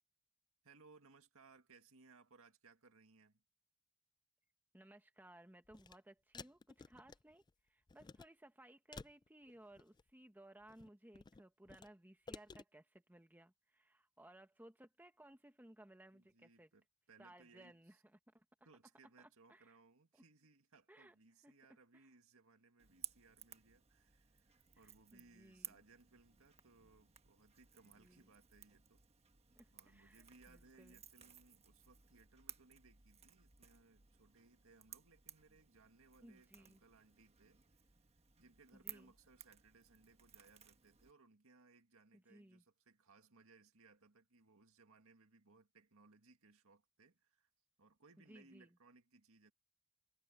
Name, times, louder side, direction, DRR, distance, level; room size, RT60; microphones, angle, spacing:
voice 1, 0.6-3.4 16.1-18.0 18.6-29.0 29.7-37.9 38.4-47.5 47.8-49.5, right 3 dB, 65° right, 2.1 m, -66 dB
voice 2, 4.7-16.7 17.2-18.0 18.3-18.4 19.2-19.7 20.9-21.1 21.4-21.6 21.9-22.1 24.7-25.8 28.0-28.3 29.6-31.0 36.2-36.8 38.7-39.1 42.1-42.6 48.2-48.7, right 1 dB, 10° right, 1.1 m, -61 dB
sound 1, 5.7-6.0 6.3-7.5 7.9-8.3 8.9-10.1 10.6-11.9 12.3-12.6, left 4 dB, 20° left, 0.3 m, -54 dB
Crackle / Crack, 22.8-41.1, right 8 dB, 30° right, 1.5 m, -58 dB
head